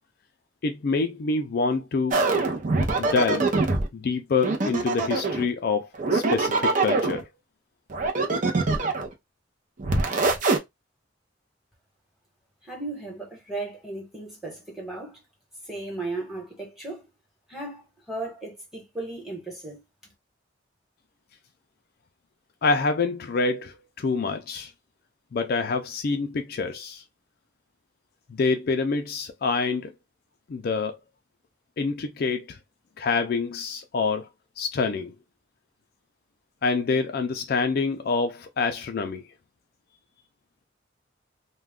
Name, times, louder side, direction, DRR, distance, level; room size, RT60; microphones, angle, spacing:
voice 1, 0.6-2.2 3.0-3.5 3.9-7.3 22.6-24.7 25.3-27.0 28.3-29.9 30.5-31.0 31.8-32.6 33.0-34.3 34.6-35.1 36.6-39.2, left 4 dB, 50° left, 0.4 m, -26 dB
sound 1, 2.1-3.9 4.4-5.5 5.9-7.2 7.9-9.1 9.8-10.6, right 3 dB, 40° right, 0.6 m, -23 dB
voice 2, 12.6-15.2 15.7-17.1 17.5-17.8 18.1-20.1, right 2 dB, ahead, 1.1 m, -36 dB
2.3 x 2.2 x 3.4 m
head